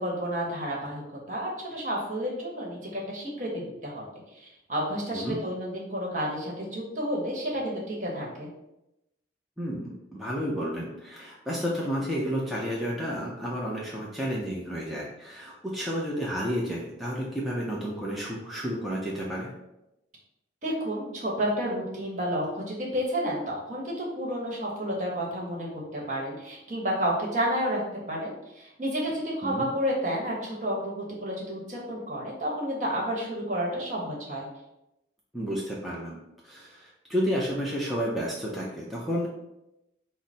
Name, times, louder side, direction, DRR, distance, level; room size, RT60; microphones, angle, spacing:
voice 1, 0.0-4.0 4.3-8.5 20.6-27.8 28.1-34.5, equal, 40° right, -3 dB, 1.1 m, -31 dB
voice 2, 9.6-19.5 29.4-29.7 35.3-36.2 36.4-39.3, equal, ahead, -5 dB, 0.5 m, -31 dB
4.8 x 2.0 x 4.1 m, 0.90 s
head